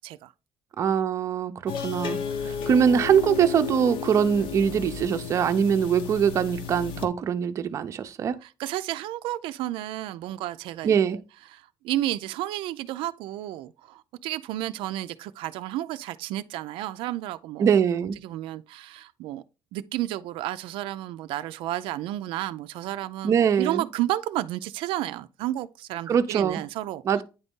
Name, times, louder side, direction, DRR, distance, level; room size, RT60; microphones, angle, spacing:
voice 1, 0.8-8.4 10.8-11.2 17.6-18.2 23.2-23.9 26.1-26.6 27.1-27.2, right 7 dB, 35° right, 0.5 m, -23 dB
sound 1, 1.7-7.1, left 7 dB, 75° left, 1.0 m, -33 dB
voice 2, 8.4-11.2 11.5-17.7 18.2-19.4 19.7-27.0, right 14 dB, 85° right, 0.4 m, -32 dB
9.4 x 4.0 x 3.6 m
cardioid pair, 175°, 9 cm